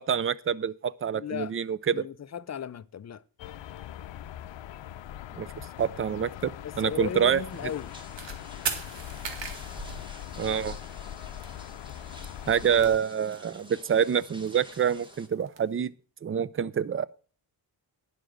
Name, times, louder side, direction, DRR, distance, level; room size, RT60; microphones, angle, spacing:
voice 1, 0.0-2.0 5.3-5.5 5.8-6.5 6.8-7.4 10.4-10.8 12.5-15.9 16.2-17.1, right 8 dB, 30° right, 0.4 m, -26 dB
voice 2, 1.1-1.5 1.9-3.2 6.6-8.0, left 8 dB, 40° left, 0.5 m, -36 dB
sound 1, 3.4-13.0, left 11 dB, 90° left, 0.7 m, -41 dB
sound 2, 7.5-15.3, equal, 10° right, 1.4 m, -50 dB
sound 3, 8.2-8.4 8.7-10.8 11.1-11.2 11.4-11.5 11.7-12.2 12.5-13.7 14.1-15.6, right 5 dB, 80° right, 2.0 m, -37 dB
10.0 x 7.2 x 6.2 m
wide cardioid pair, 150°, 44 cm